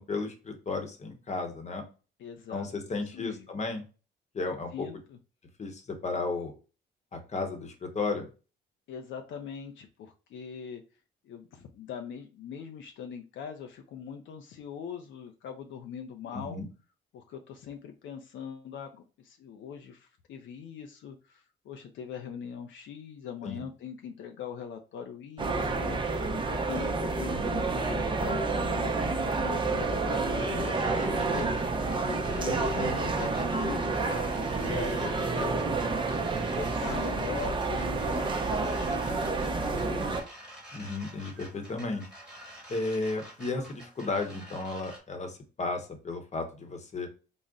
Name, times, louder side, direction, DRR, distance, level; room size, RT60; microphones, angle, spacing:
voice 1, 0.0-1.8 2.5-3.8 4.3-4.9 5.6-6.5 7.1-8.3 16.3-16.7 23.4-23.6 27.3-27.6 32.5-33.0 40.7-42.1 42.7-47.1, left 3 dB, 35° left, 5 dB, 0.9 m, -34 dB
voice 2, 2.2-3.5 4.7-5.2 8.9-10.8 11.2-16.6 17.1-36.0 36.5-40.1, left 7 dB, 75° left, 5 dB, 0.5 m, -42 dB
sound 1, 25.4-40.2, right 3 dB, 25° right, 0.6 m, -29 dB
sound 2, 30.3-45.0, right 1 dB, 5° right, 1.3 m, -48 dB
3.9 x 2.1 x 3.5 m, 0.34 s
cardioid pair, 90°, 20 cm